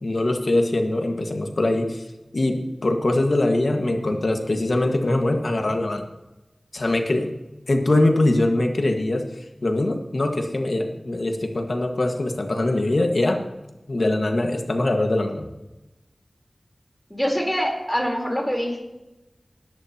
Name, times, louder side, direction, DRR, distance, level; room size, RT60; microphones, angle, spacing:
voice 1, 0.0-2.0 2.3-6.1 6.7-7.3 7.7-9.3 9.6-13.4 13.9-15.5, left 2 dB, 70° left, 4 dB, 1.7 m, -22 dB
voice 2, 17.1-18.8, equal, 5° left, 0 dB, 4.0 m, -24 dB
20.0 x 11.0 x 3.0 m, 0.99 s
wide cardioid pair, 70°, 0 cm